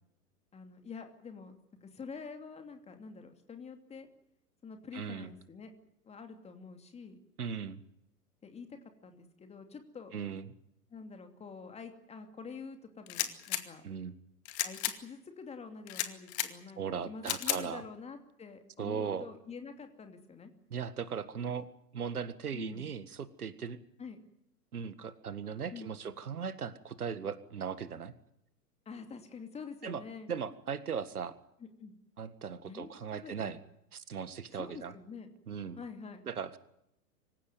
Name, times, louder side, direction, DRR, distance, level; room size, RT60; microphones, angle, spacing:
voice 1, 0.5-1.5 1.8-4.1 4.6-5.7 6.0-7.2 8.4-10.1 10.9-13.8 14.6-20.5 22.5-22.9 24.0-24.2 25.7-25.9 28.9-30.3 31.6-31.9 32.6-33.6 34.5-35.3 35.8-36.2, left 5 dB, 15° left, 6 dB, 2.7 m, -47 dB
voice 2, 4.9-5.3 7.4-7.8 10.1-10.4 13.8-14.1 16.8-17.8 18.8-19.3 20.7-21.7 21.9-23.8 24.7-28.1 29.8-30.0 30.3-31.3 32.2-33.6 33.9-34.9 35.5-35.8 36.3-36.6, right 7 dB, 70° right, 14 dB, 1.9 m, -38 dB
sound 1, 13.1-13.6 14.5-15.0 15.9-16.5 17.2-17.6, left 13 dB, 45° left, 2.4 m, -33 dB
26.0 x 16.0 x 9.4 m, 0.80 s
figure-of-eight pair, 105°, 47 cm